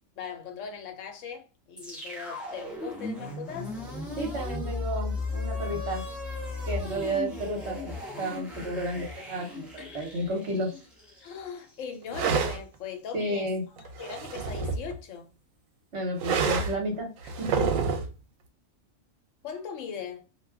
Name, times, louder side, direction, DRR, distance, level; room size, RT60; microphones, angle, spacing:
voice 1, 0.2-3.7 9.8-10.1 11.2-13.5 13.8-15.3 19.4-20.3, left 7 dB, 75° left, 1.0 m, -40 dB
sound 1, 1.8-12.0, left 3 dB, ahead, 0.7 m, -36 dB
voice 2, 4.2-6.0 6.7-10.7 13.1-13.6 15.9-17.8, right 1 dB, 60° right, 1.2 m, -32 dB
sound 2, 12.1-12.6 13.8-14.9 16.2-16.8 17.3-18.1, right 5 dB, 80° right, 1.0 m, -28 dB
2.5 x 2.3 x 3.3 m
omnidirectional pair, 1.4 m